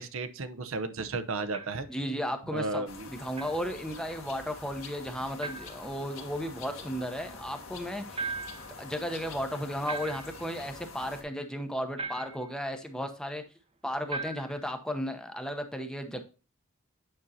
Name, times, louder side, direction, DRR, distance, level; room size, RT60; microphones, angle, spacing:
voice 1, 0.0-1.9 2.5-3.1, right 3 dB, 70° right, 10 dB, 0.7 m, -34 dB
sound 1, 1.5-1.9 3.3-3.6 5.4-5.8 8.1-8.7 9.9-10.5 12.0-12.5 14.1-14.6, right 3 dB, 30° right, 0.7 m, -38 dB
voice 2, 1.9-8.2 8.8-13.4 13.8-16.2, equal, 5° left, 7 dB, 0.8 m, -34 dB
sound 2, 2.9-11.2, left 4 dB, 75° left, 1.8 m, -46 dB
8.9 x 5.4 x 2.7 m, 0.34 s
head